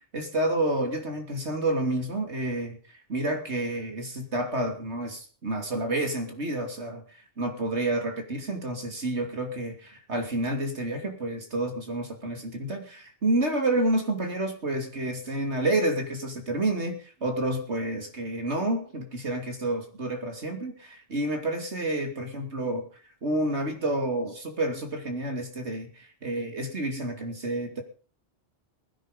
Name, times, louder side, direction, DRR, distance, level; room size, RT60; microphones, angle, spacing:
voice 1, 0.0-2.8 3.1-22.8 23.2-27.8, right 1 dB, 85° right, 4 dB, 3.2 m, -29 dB
22.0 x 9.7 x 5.2 m, 0.39 s
omnidirectional pair, 1.1 m